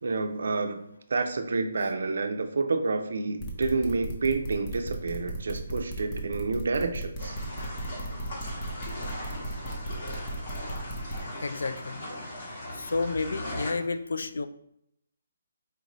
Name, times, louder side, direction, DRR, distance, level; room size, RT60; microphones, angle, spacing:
voice 1, 0.0-7.4, right 3 dB, 70° right, 7 dB, 0.5 m, -29 dB
sound 1, 3.4-11.2, right 1 dB, 20° left, 0.8 m, -36 dB
sound 2, 7.2-13.7, left 1 dB, 45° left, 1.4 m, -39 dB
voice 2, 11.4-12.0 12.7-14.5, left 3 dB, 75° left, 10 dB, 0.3 m, -30 dB
4.4 x 2.5 x 3.0 m, 0.74 s
hypercardioid pair, 155°, 0 cm